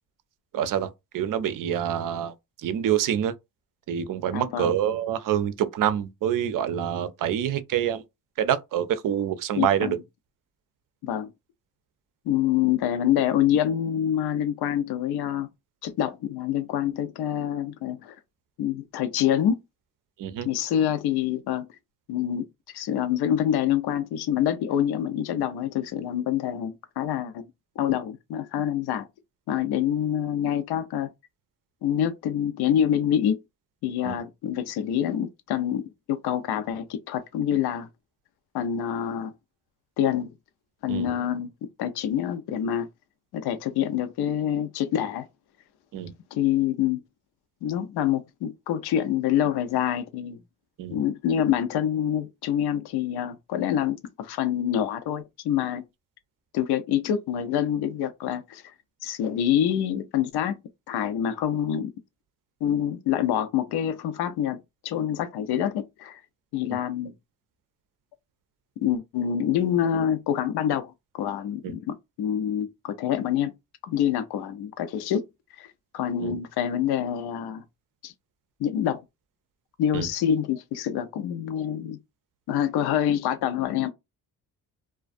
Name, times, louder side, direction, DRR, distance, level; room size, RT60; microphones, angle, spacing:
voice 1, 0.5-3.3 3.9-8.0 8.4-10.0 20.2-20.5 34.0-34.2 40.9-41.1 45.9-46.1 50.8-51.0 66.7-66.8 71.6-71.7 76.2-76.4 79.9-80.1, right 10 dB, 55° right, 0.5 m, -26 dB
voice 2, 4.3-4.7 9.6-10.0 11.0-11.3 12.3-15.5 15.8-18.2 18.6-19.6 20.4-21.7 22.1-22.5 22.7-27.4 27.8-29.1 29.5-31.1 31.8-33.4 33.8-37.9 38.5-39.3 40.0-40.3 40.8-41.5 41.8-42.9 43.3-45.3 46.3-47.0 47.6-50.4 50.9-55.8 56.5-58.6 59.0-60.6 60.9-61.9 62.6-66.2 66.5-67.1 68.8-73.5 73.8-75.3 75.6-75.7 75.9-77.6 78.0-78.1 78.6-79.0 79.8-82.0 82.5-83.9, left 10 dB, 75° left, 0.5 m, -26 dB
2.4 x 2.2 x 2.4 m
cardioid pair, 75°, 39 cm